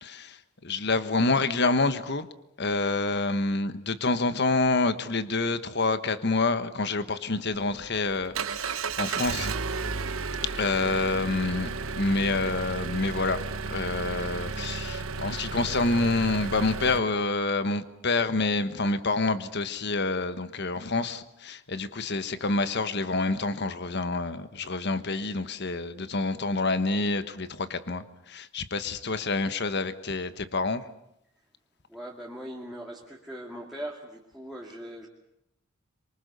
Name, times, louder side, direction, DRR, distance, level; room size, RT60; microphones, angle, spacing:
voice 1, 0.0-0.4 0.6-2.3 2.6-9.5 10.4-13.4 13.7-30.8, left 3 dB, 55° left, 12 dB, 1.3 m, -27 dB
Engine, 7.5-17.0, right 4 dB, 75° right, 1.2 m, -33 dB
voice 2, 31.9-35.1, right 1 dB, ahead, -4 dB, 2.4 m, -40 dB
26.5 x 24.0 x 6.8 m, 0.81 s
head